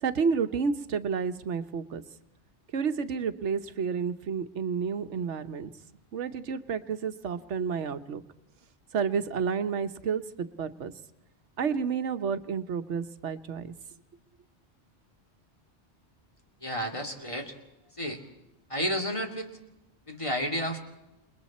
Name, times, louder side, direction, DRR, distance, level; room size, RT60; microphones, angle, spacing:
voice 1, 0.0-2.0 2.7-5.7 6.1-8.2 8.9-10.9 11.6-13.7, right 6 dB, 85° right, 11 dB, 1.2 m, -30 dB
voice 2, 16.6-17.5 18.0-18.2 18.7-19.5 20.1-20.8, equal, 25° left, 3 dB, 2.6 m, -31 dB
28.5 x 21.0 x 4.3 m, 0.95 s
omnidirectional pair, 1.2 m